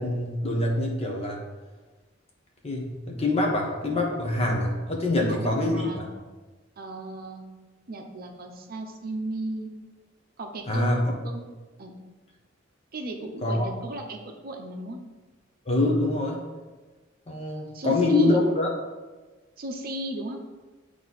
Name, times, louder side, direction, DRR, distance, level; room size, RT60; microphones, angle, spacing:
voice 1, 0.0-1.4 2.6-6.1 10.7-11.2 13.4-13.7 15.6-16.5 17.3-18.7, left 2 dB, 30° left, 0 dB, 1.1 m, -25 dB
voice 2, 5.2-6.1 6.8-7.5 7.9-9.7 10.4-11.0 11.2-11.4 11.8-11.9 12.9-15.0 17.7-18.4 19.6-20.4, right 1 dB, 50° right, 3 dB, 0.7 m, -35 dB
9.3 x 3.3 x 4.0 m, 1.2 s
head